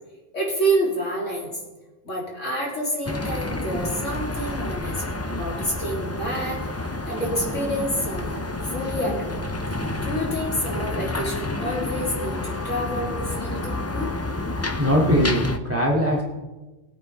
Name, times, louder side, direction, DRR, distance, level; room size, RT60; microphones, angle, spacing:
voice 1, 0.3-1.6 2.0-8.4 8.6-9.5 9.7-14.1, right 1 dB, 75° left, -4 dB, 3.7 m, -28 dB
Birds and Construction (ambient), 3.1-15.6, left 2 dB, 20° left, 0.4 m, -29 dB
voice 2, 14.5-16.2, equal, 10° right, -3 dB, 2.6 m, -21 dB
22.0 x 9.0 x 3.5 m, 1.2 s
omnidirectional pair, 1.3 m